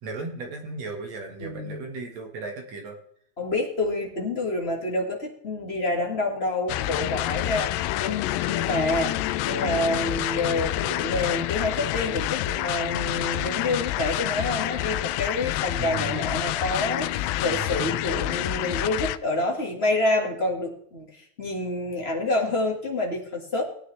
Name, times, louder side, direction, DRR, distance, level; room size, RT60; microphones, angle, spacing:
voice 1, 0.0-3.0 15.8-16.2 17.5-17.9, right 3 dB, 55° right, 3 dB, 2.4 m, -36 dB
voice 2, 1.4-1.8 3.4-8.2 8.4-23.6, left 2 dB, 30° left, 0 dB, 1.2 m, -28 dB
sound 1, 6.7-19.2, left 14 dB, 85° left, 2.3 m, -28 dB
18.5 x 9.1 x 3.3 m, 0.66 s
omnidirectional pair, 4.1 m